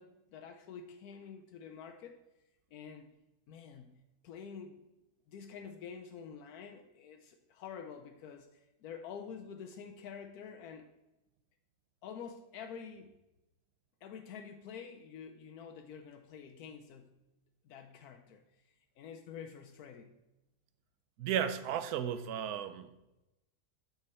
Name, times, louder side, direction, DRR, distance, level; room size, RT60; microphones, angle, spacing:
voice 1, 0.0-2.2 2.7-3.1 3.5-4.9 5.3-10.9 12.0-13.1 14.0-17.1 17.6-18.4 19.0-20.2, left 6 dB, 85° left, 6 dB, 1.1 m, -48 dB
voice 2, 21.2-23.0, right 9 dB, 85° right, 12 dB, 1.2 m, -34 dB
8.1 x 6.3 x 4.3 m, 0.95 s
omnidirectional pair, 1.6 m